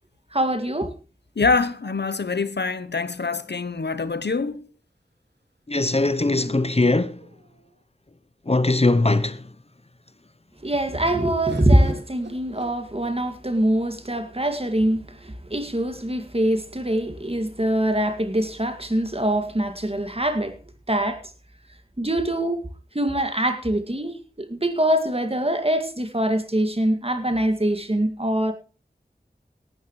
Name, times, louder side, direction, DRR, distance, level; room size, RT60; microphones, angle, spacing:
voice 1, 0.3-0.9 10.6-20.5 20.9-21.2 22.0-22.7 22.9-28.5, right 1 dB, 35° right, 2.2 m, -23 dB
voice 2, 1.4-4.7, left 4 dB, 80° left, 0.8 m, -25 dB
sound 1, 3.2-4.3 6.2-7.8 8.5-8.6 8.9-9.5 11.5-13.4 14.3-15.0, right 1 dB, 90° right, 4.1 m, -43 dB
voice 3, 5.7-7.1 8.5-9.4, left 2 dB, 35° left, 0.8 m, -20 dB
18.0 x 12.0 x 3.2 m
wide cardioid pair, 50°, 17 cm